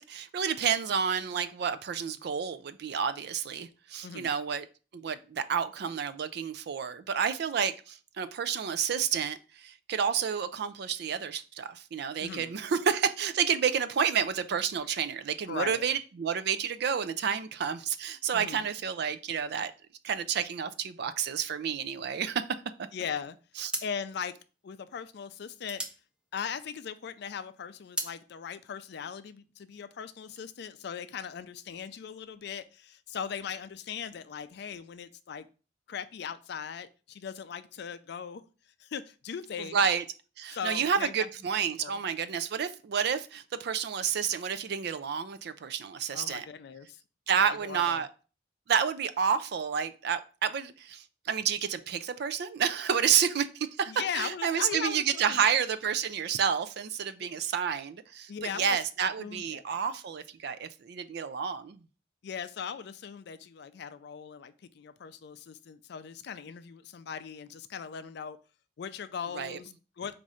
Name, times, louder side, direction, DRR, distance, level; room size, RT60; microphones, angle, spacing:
voice 1, 0.0-4.7 4.9-19.7 20.0-22.5 23.6-23.7 39.7-40.0 40.4-46.5 47.3-48.1 48.7-61.8 69.3-69.6, right 7 dB, 65° right, 0.4 m, -30 dB
voice 2, 4.0-4.4 12.2-12.5 15.5-15.8 18.3-18.7 22.9-23.4 23.8-24.3 24.6-25.8 26.3-35.5 35.9-38.4 38.8-39.8 40.5-41.3 41.8-42.0 46.1-47.0 47.4-48.0 53.9-55.4 57.2-57.4 58.3-59.6 62.2-68.4 68.8-70.2, left 7 dB, 65° left, 0.4 m, -39 dB
sound 1, 23.0-23.2 23.6-27.0 27.4-28.2, right 1 dB, 5° right, 0.5 m, -39 dB
4.1 x 2.6 x 4.8 m
head